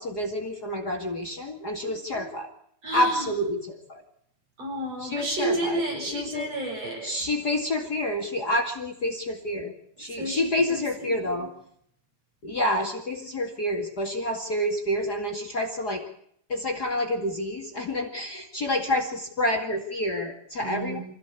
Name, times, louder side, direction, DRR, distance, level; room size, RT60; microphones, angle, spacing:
voice 1, 0.0-2.5 2.9-3.6 3.9-4.0 5.0-5.8 6.1-6.5 7.0-9.7 10.0-11.5 12.4-16.0 16.5-21.0, left 1 dB, 35° left, 5 dB, 2.5 m, -28 dB
voice 2, 1.8-2.3 2.8-3.3 4.6-7.1 10.0-11.5 20.6-21.0, right 1 dB, 55° right, 0 dB, 8.5 m, -32 dB
25.5 x 16.0 x 8.3 m, 0.69 s
omnidirectional pair, 3.4 m